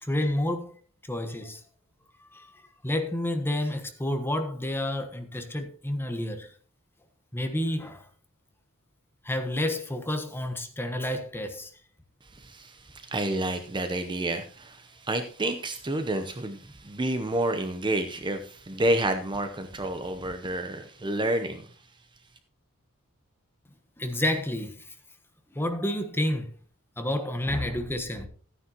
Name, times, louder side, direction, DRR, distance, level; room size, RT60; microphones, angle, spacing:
voice 1, 0.0-0.7 1.1-1.6 2.3-6.5 7.3-8.0 9.2-11.7 24.0-24.9 25.5-26.5 27.0-28.3, left 1 dB, 10° left, 1.2 m, -30 dB
voice 2, 12.2-21.9, right 1 dB, 20° right, 0.7 m, -29 dB
14.0 x 9.6 x 2.9 m
head